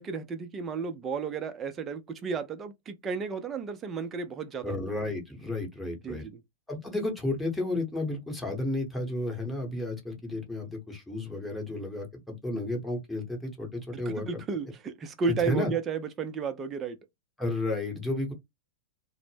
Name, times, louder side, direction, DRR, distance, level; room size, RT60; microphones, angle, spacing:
voice 1, 0.0-4.8 6.0-6.4 13.9-17.0, right 5 dB, 25° right, 0.5 m, -33 dB
voice 2, 4.6-6.2 6.7-14.4 15.3-15.7 17.4-18.3, left 2 dB, 5° left, 0.9 m, -32 dB
2.0 x 2.0 x 3.1 m
hypercardioid pair, 105°, 0 cm